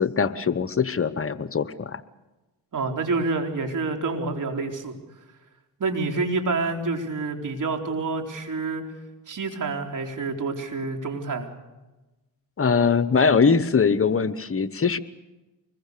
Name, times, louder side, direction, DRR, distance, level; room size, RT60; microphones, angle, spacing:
voice 1, 0.0-2.0 12.6-15.0, left 5 dB, 35° left, 14 dB, 1.1 m, -22 dB
voice 2, 2.7-4.9 5.8-8.9 9.3-11.5, right 3 dB, 50° right, 4 dB, 4.0 m, -28 dB
25.0 x 21.5 x 6.8 m, 1.1 s
cardioid pair, 75°, 39 cm